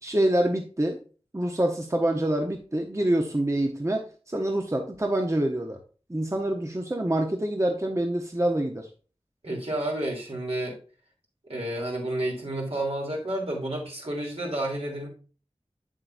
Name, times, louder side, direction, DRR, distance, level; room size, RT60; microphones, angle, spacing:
voice 1, 0.0-1.0 1.3-5.8 6.1-8.9, right 1 dB, 30° right, 3 dB, 0.9 m, -26 dB
voice 2, 9.4-10.7 11.5-15.1, right 1 dB, 75° right, -2 dB, 3.0 m, -30 dB
7.9 x 7.5 x 2.6 m, 0.37 s
wide cardioid pair, 45°, 11 cm